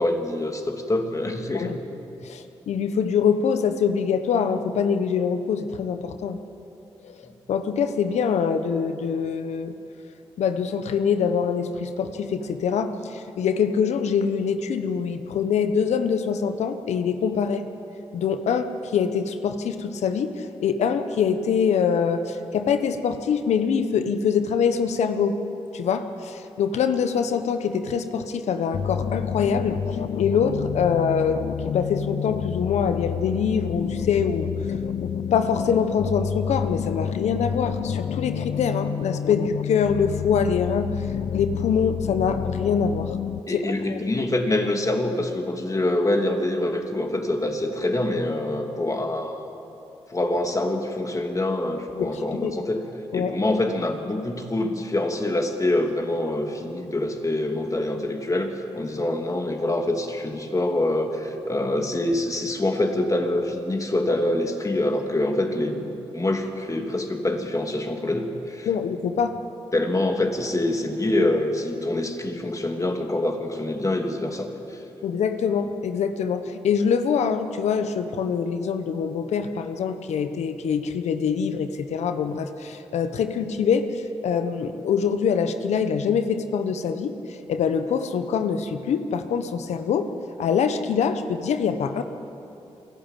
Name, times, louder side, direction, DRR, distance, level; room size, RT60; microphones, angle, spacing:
voice 1, 0.0-1.8 43.5-49.4 50.1-52.8 53.1-65.9 66.1-68.7 69.7-74.8, left 1 dB, 30° left, 3 dB, 3.0 m, -25 dB
voice 2, 2.2-6.4 7.0-9.7 10.4-17.6 18.1-25.3 25.7-29.8 30.2-34.8 35.0-43.1 43.5-43.6 43.9-44.0 52.0-52.1 52.4-52.6 53.1-53.3 68.7-69.4 75.0-90.1 90.4-92.0, left 6 dB, 80° left, 9 dB, 1.2 m, -24 dB
sound 1, 28.7-43.4, left 8 dB, 60° left, 0.5 m, -29 dB
27.0 x 11.5 x 9.2 m, 2.9 s
supercardioid pair, 50°, 11 cm